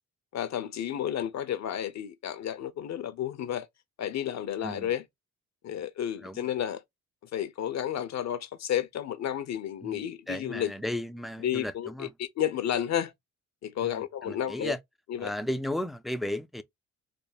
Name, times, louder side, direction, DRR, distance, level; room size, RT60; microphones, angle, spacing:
voice 1, 0.3-3.7 4.0-5.0 5.6-6.8 7.3-10.7 11.4-13.1 13.6-14.7 15.1-15.3, left 10 dB, 60° left, 0.7 m, -31 dB
voice 2, 4.6-4.9 6.2-6.5 9.8-12.1 13.8-14.8 15.2-16.6, left 1 dB, ahead, 0.4 m, -35 dB
3.4 x 2.1 x 4.0 m
cardioid pair, 90°, 30 cm